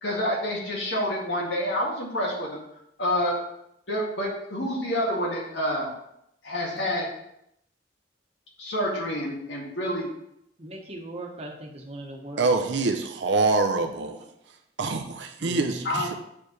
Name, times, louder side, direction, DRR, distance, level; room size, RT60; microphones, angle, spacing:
voice 1, 0.0-2.6 3.0-3.4 3.9-5.9 6.4-7.1 8.6-10.1 15.8-16.1, equal, 75° left, -2 dB, 2.0 m, -28 dB
voice 2, 10.6-12.5 15.4-16.0, right 1 dB, 35° right, 0 dB, 1.2 m, -38 dB
voice 3, 12.4-14.2 14.8-16.1, right 3 dB, 75° right, 5 dB, 0.6 m, -25 dB
8.4 x 4.7 x 3.2 m, 0.77 s
head